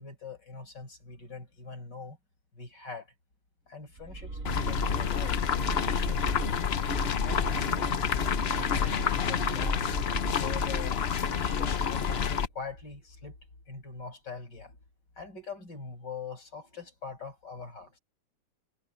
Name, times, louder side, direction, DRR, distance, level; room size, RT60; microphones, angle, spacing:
voice 1, 0.0-2.2 2.5-3.1 3.7-6.6 7.2-8.1 8.5-9.9 10.3-11.0 11.3-13.4 13.7-14.8 15.2-18.0, left 4 dB, 70° left, 7.3 m, -43 dB
sound 1, 4.0-12.9, right 3 dB, 45° right, 3.1 m, -40 dB
sound 2, 4.4-12.5, left 7 dB, 50° left, 0.8 m, -28 dB
omnidirectional pair, 2.0 m